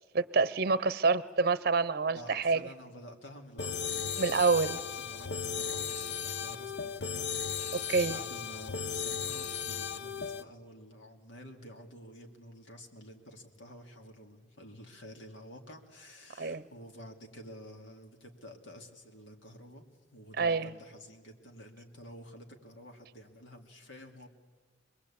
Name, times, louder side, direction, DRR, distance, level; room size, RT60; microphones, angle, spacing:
voice 1, 0.1-2.6 4.2-4.8 7.7-8.2 16.4-16.6 20.4-20.7, right 4 dB, 55° right, 17 dB, 0.7 m, -27 dB
voice 2, 2.1-7.7 8.0-19.8 20.1-24.3, equal, 85° left, 3 dB, 2.7 m, -50 dB
sound 1, 3.6-10.4, left 6 dB, 65° left, 0.7 m, -36 dB
25.0 x 21.0 x 8.7 m, 1.4 s
head